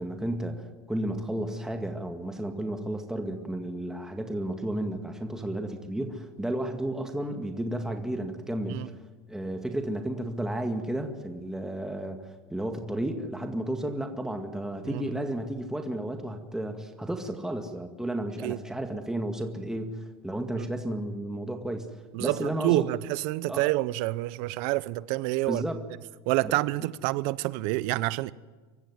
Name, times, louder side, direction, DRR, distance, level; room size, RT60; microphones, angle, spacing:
voice 1, 0.0-8.8 9.3-12.2 12.5-21.9 22.2-22.9 23.5-23.6 25.5-25.8 26.4-26.5, right 1 dB, 5° right, 2.0 m, -32 dB
voice 2, 22.1-25.6 26.3-28.3, right 19 dB, 65° right, 0.8 m, -28 dB
25.0 x 14.5 x 9.5 m
supercardioid pair, 105°, 13 cm